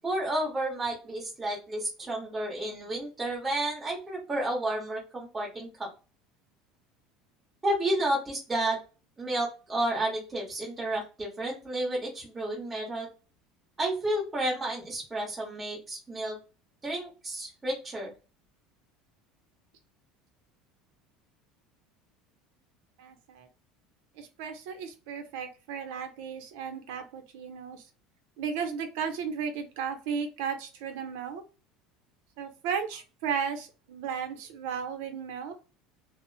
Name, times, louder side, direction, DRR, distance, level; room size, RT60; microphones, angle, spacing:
voice 1, 0.0-5.9 7.6-8.8 9.2-13.1 13.8-16.4 16.8-18.1, right 1 dB, 15° right, -4 dB, 1.1 m, -31 dB
voice 2, 23.0-23.5 24.2-27.8 28.4-31.4 32.4-35.5, right 7 dB, 75° right, 6 dB, 0.6 m, -35 dB
2.8 x 2.0 x 2.7 m, 0.32 s
cardioid pair, 155°, 0 cm